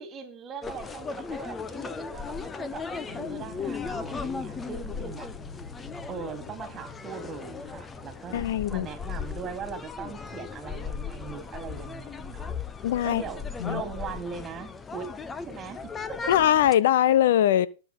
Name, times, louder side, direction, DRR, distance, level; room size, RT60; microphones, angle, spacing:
voice 1, 0.0-5.3 6.1-12.5 13.0-15.1 15.4-16.3, right 6 dB, 25° right, 3.2 m, -40 dB
sound 1, 0.6-16.8, left 5 dB, 15° left, 1.0 m, -37 dB
sound 2, 3.1-9.6 9.9-10.0, left 5 dB, 35° left, 3.4 m, -46 dB
voice 2, 8.3-8.9 12.8-13.2 13.6-13.8 16.3-17.7, left 11 dB, 60° left, 0.8 m, -21 dB
19.5 x 7.1 x 3.7 m
hypercardioid pair, 115°, 0 cm